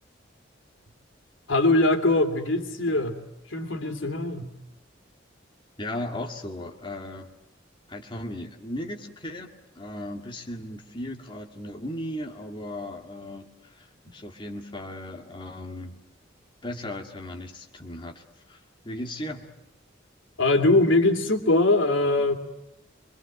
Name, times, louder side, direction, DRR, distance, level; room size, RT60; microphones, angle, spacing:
voice 1, 1.5-3.2 3.5-4.5 20.4-22.3, left 2 dB, 85° left, 6 dB, 3.0 m, -22 dB
voice 2, 5.8-7.3 7.9-13.9 14.1-16.0 16.6-19.5, left 1 dB, 25° left, 2 dB, 2.2 m, -36 dB
25.0 x 24.0 x 7.7 m, 0.88 s
head